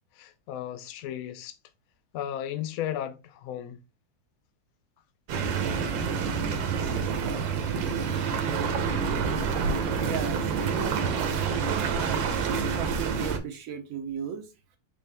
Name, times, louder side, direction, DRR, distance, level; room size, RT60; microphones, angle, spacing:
voice 1, 0.1-1.6 2.1-3.8, left 11 dB, 70° left, 0.8 m, -35 dB
sound 1, 5.3-13.4, right 6 dB, 90° right, 1.5 m, -28 dB
voice 2, 10.0-11.0 11.4-12.3 12.7-14.5, right 7 dB, 60° right, 0.9 m, -36 dB
4.4 x 3.5 x 3.3 m
omnidirectional pair, 2.0 m